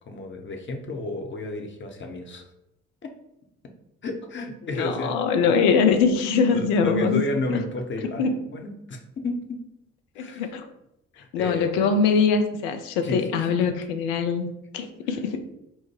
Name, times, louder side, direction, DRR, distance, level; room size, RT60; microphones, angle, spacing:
voice 1, 0.1-2.5 3.0-3.1 4.0-5.1 5.4-5.6 6.5-9.6 10.2-10.4 11.2-11.7 13.0-13.6, left 2 dB, 30° left, 3 dB, 0.8 m, -32 dB
voice 2, 4.7-7.2 8.2-8.3 10.2-10.7 11.3-15.4, left 5 dB, 65° left, 7 dB, 0.7 m, -22 dB
4.4 x 2.2 x 4.6 m, 0.83 s
figure-of-eight pair, 45°, 40 cm